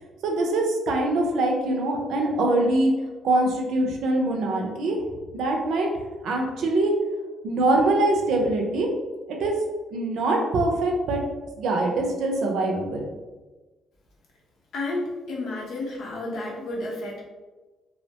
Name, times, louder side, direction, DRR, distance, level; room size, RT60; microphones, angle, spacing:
voice 1, 0.2-2.9 3.2-5.0 5.3-5.9 6.2-6.9 7.4-8.9 9.3-9.6 9.9-11.2 11.6-13.0, right 2 dB, 80° right, 1 dB, 0.5 m, -23 dB
voice 2, 14.7-17.2, left 2 dB, 70° left, -3 dB, 0.7 m, -31 dB
2.5 x 2.1 x 2.8 m, 1.2 s
cardioid pair, 90°, 0 cm